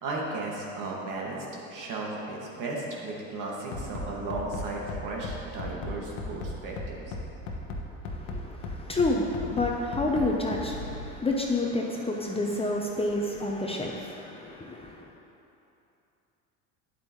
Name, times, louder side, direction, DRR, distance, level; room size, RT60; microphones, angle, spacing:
voice 1, 0.0-7.1, right 2 dB, 55° right, -3 dB, 2.1 m, -35 dB
Bass drum, 3.7-11.1, left 2 dB, 75° left, 1.2 m, -35 dB
voice 2, 8.0-15.1, left 2 dB, 15° left, -1 dB, 0.8 m, -29 dB
9.3 x 8.4 x 3.2 m, 2.8 s
supercardioid pair, 90°, 38 cm